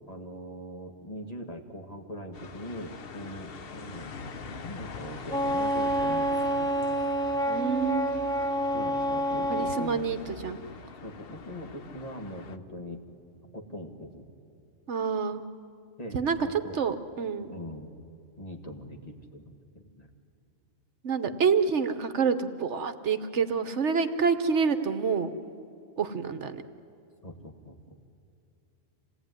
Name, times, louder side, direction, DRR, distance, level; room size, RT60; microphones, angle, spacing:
voice 1, 0.1-6.8 8.7-10.1 11.0-13.0 13.5-14.2 16.0-16.8 17.5-18.0 18.4-20.1 27.2-28.1, equal, 30° left, 3 dB, 2.0 m, -41 dB
sound 1, 2.3-12.6, left 5 dB, 50° left, 1.0 m, -43 dB
Wind instrument woodwind instrument, 5.3-9.9, right 1 dB, 5° left, 0.5 m, -28 dB
voice 2, 7.5-8.2 9.5-10.2 10.4-10.6 14.9-15.4 16.1-16.4 16.7-17.6 21.0-25.3 26.0-26.6, right 5 dB, 65° right, 10 dB, 1.2 m, -27 dB
27.0 x 17.5 x 9.6 m, 2.7 s
omnidirectional pair, 1.3 m